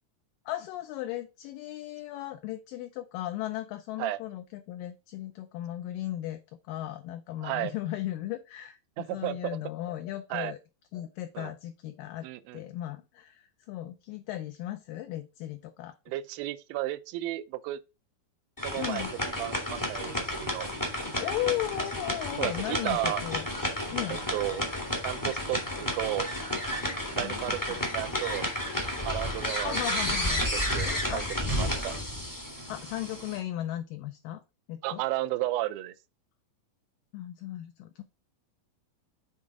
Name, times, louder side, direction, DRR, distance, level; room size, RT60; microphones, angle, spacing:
voice 1, 0.5-6.4 6.7-10.6 10.9-12.3 12.5-16.0 18.8-19.1 21.2-23.5 23.9-24.2 27.2-27.6 29.6-30.5 30.9-31.3 32.7-34.4 34.7-35.0 37.1-38.0, left 14 dB, 80° left, 2.1 m, -36 dB
voice 2, 7.4-7.7 9.0-9.6 10.3-10.5 11.3-11.5 12.2-12.6 16.1-17.8 18.6-20.7 22.4-23.2 24.3-24.6 25.0-26.3 27.2-28.5 29.1-30.0 30.3-31.2 31.6-32.0 34.8-35.9, right 15 dB, 85° right, 2.4 m, -33 dB
sound 1, 18.6-33.4, left 1 dB, 25° left, 0.4 m, -32 dB
7.4 x 3.9 x 4.7 m
omnidirectional pair, 4.3 m